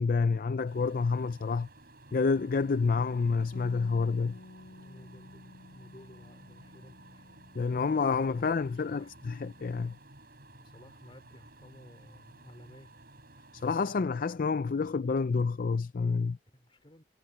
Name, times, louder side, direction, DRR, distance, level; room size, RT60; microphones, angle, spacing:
voice 1, 0.0-1.7 2.1-4.4 7.6-10.0 13.6-16.4, left 4 dB, 50° left, 0.4 m, -28 dB
sound 1, 0.6-13.9, right 2 dB, 55° right, 8.0 m, -55 dB
Bass guitar, 3.5-9.8, left 3 dB, 70° left, 1.6 m, -53 dB
voice 2, 4.7-7.3 8.4-9.1 10.6-12.9 16.5-17.0, equal, 30° left, 3.6 m, -54 dB
head